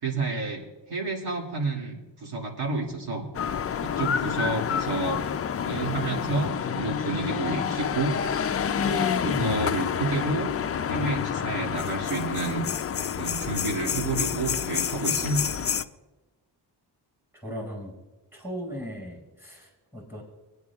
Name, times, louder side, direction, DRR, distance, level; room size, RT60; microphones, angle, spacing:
voice 1, 0.0-3.3 3.8-5.2 5.6-8.2 8.8-10.5 10.9-12.7 13.2-15.5, right 3 dB, 65° right, 0 dB, 2.5 m, -30 dB
sound 1, 3.3-15.8, left 8 dB, 35° left, 0.4 m, -28 dB
voice 2, 17.3-17.9 18.3-20.2, equal, 5° right, -1 dB, 4.8 m, -38 dB
23.0 x 9.5 x 2.4 m, 1.1 s
wide cardioid pair, 110°, 43 cm